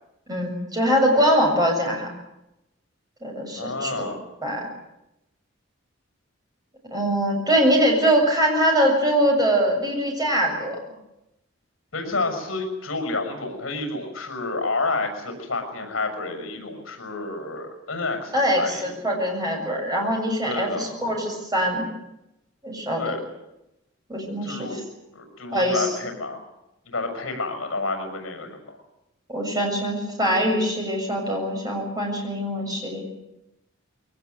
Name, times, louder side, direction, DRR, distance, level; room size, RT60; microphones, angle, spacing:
voice 1, 0.3-2.1 3.2-4.1 4.4-4.7 6.9-10.8 18.3-21.8 22.6-23.2 24.1-24.7 25.5-25.9 29.3-33.0, equal, 20° right, 1 dB, 7.3 m, -23 dB
voice 2, 3.6-4.2 11.9-18.9 20.4-20.9 23.0-23.2 24.4-24.8 25.1-26.4 26.8-28.8, left 3 dB, 70° left, 5 dB, 6.5 m, -29 dB
22.0 x 19.0 x 9.7 m, 0.89 s
head